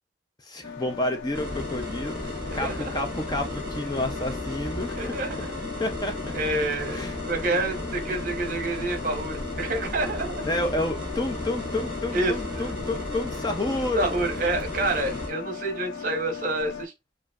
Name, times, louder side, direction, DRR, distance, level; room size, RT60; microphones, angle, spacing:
voice 1, 0.4-5.2 5.8-6.2 6.9-7.2 10.4-14.1, left 1 dB, 20° left, 0.5 m, -30 dB
sound 1, 0.6-16.8, left 6 dB, 85° left, 0.8 m, -38 dB
sound 2, 1.3-15.3, left 1 dB, 5° right, 2.3 m, -35 dB
voice 2, 4.9-5.5 6.3-10.4 12.1-12.6 14.0-16.9, right 2 dB, 45° right, 1.0 m, -28 dB
4.9 x 2.5 x 2.4 m
head